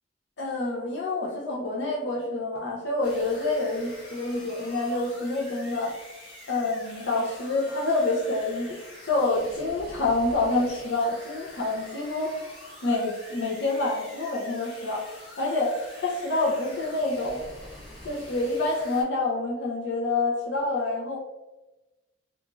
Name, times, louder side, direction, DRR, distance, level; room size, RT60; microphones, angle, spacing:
voice 1, 0.4-6.0 6.5-8.8 9.0-12.3 12.8-15.1 15.4-17.4 18.0-21.2, left 2 dB, 65° left, -4 dB, 0.5 m, -27 dB
sound 1, 3.0-19.0, left 1 dB, 25° left, 1.2 m, -46 dB
2.9 x 2.4 x 2.4 m, 1.1 s
head